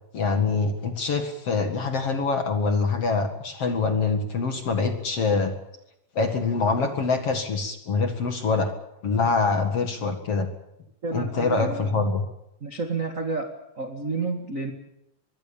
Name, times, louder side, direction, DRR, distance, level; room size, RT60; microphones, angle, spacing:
voice 1, 0.1-5.5 6.2-8.7 9.0-10.5 11.1-12.2, left 4 dB, 45° left, 6 dB, 2.3 m, -25 dB
voice 2, 11.0-12.0 12.6-13.5 13.7-14.7, right 3 dB, 40° right, 3 dB, 1.1 m, -30 dB
25.0 x 21.5 x 7.2 m, 0.83 s
omnidirectional pair, 4.8 m